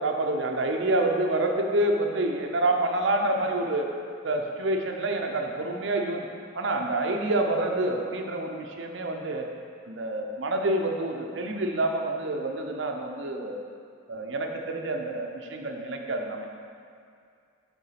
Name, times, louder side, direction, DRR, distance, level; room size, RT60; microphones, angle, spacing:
voice 1, 0.0-3.9 4.2-6.3 6.5-9.5 9.9-13.6 14.1-16.5, right 2 dB, 60° right, 2 dB, 0.7 m, -27 dB
7.0 x 3.8 x 5.8 m, 2.3 s
head